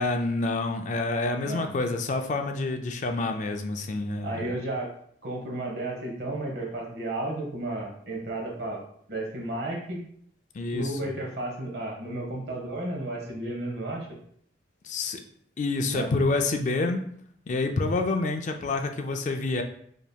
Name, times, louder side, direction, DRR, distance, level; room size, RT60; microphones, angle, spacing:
voice 1, 0.0-4.5 10.5-11.1 14.8-15.2 15.6-17.0 17.5-19.6, left 3 dB, 40° left, 5 dB, 0.3 m, -28 dB
voice 2, 4.2-4.9 5.2-8.8 9.1-10.0 10.7-14.1 15.9-16.1, right 1 dB, 60° right, 0 dB, 1.0 m, -33 dB
5.0 x 2.8 x 2.2 m, 0.64 s
head